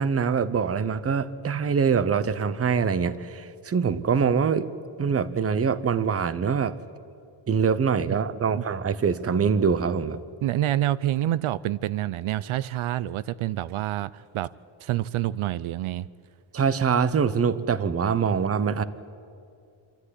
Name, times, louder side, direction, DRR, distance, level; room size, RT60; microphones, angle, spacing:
voice 1, 0.0-4.7 5.0-6.7 7.5-10.2 16.5-18.8, right 6 dB, 30° right, 15 dB, 0.7 m, -24 dB
voice 2, 10.4-14.5 14.8-16.1, right 13 dB, 80° right, 17 dB, 0.6 m, -27 dB
26.5 x 13.5 x 9.9 m, 2.5 s
wide cardioid pair, 150°, 48 cm